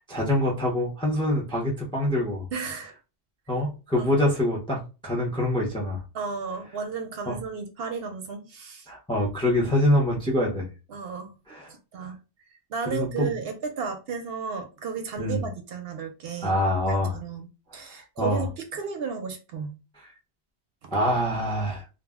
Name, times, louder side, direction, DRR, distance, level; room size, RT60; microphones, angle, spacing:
voice 1, 0.1-2.5 3.5-6.0 7.3-7.4 8.9-10.7 11.5-11.7 12.9-13.3 15.2-15.4 16.4-17.2 17.7-18.4 20.9-21.8, left 1 dB, 5° left, 0.5 m, -25 dB
voice 2, 2.5-2.9 3.9-4.3 6.1-8.9 10.9-11.3 11.9-12.2 12.7-16.6 16.9-19.8 20.8-21.0, right 5 dB, 65° right, 0.7 m, -34 dB
2.4 x 2.0 x 3.4 m
omnidirectional pair, 1.1 m